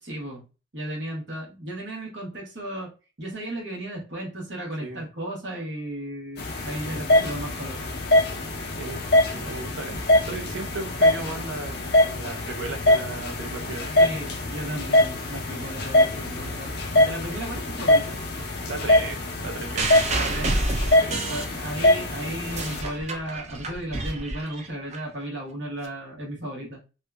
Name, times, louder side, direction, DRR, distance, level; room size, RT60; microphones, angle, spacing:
voice 1, 0.0-0.5 0.7-2.9 3.2-7.8 14.0-18.2 20.2-20.6 21.3-26.8, right 1 dB, 65° right, 1.1 m, -35 dB
sound 1, 6.4-22.8, left 1 dB, 55° left, 0.5 m, -23 dB
voice 2, 9.3-11.8 12.1-14.1 18.7-20.0 21.0-21.2, right 3 dB, 85° right, 0.6 m, -36 dB
sound 2, 19.8-22.0 22.3-25.0 25.8-25.9, right 2 dB, 35° right, 0.4 m, -29 dB
2.7 x 2.4 x 2.2 m
head